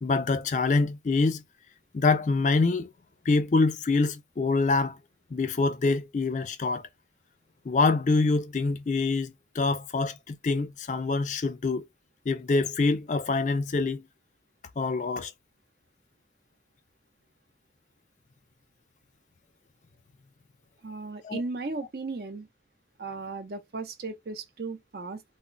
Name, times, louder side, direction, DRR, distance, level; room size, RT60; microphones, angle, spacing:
voice 1, 0.0-1.4 1.9-2.9 3.3-5.0 5.3-6.9 7.7-11.8 12.3-14.1 14.8-15.3 21.2-21.4, left 3 dB, 40° left, 0.4 m, -25 dB
voice 2, 20.8-22.5 23.0-25.4, right 3 dB, 60° right, 0.6 m, -36 dB
2.1 x 2.1 x 3.8 m
head